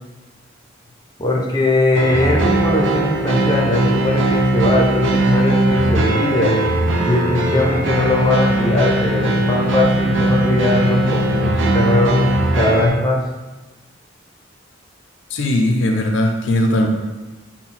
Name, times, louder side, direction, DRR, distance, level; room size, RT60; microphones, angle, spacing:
voice 1, 1.2-6.6 7.0-12.3 12.5-13.2, left 2 dB, 20° left, -1 dB, 0.6 m, -19 dB
sound 1, 1.9-12.9, right 1 dB, 75° right, 0.6 m, -18 dB
voice 2, 15.3-16.9, left 1 dB, 70° left, 3 dB, 0.5 m, -18 dB
5.7 x 2.2 x 4.2 m, 1.1 s
head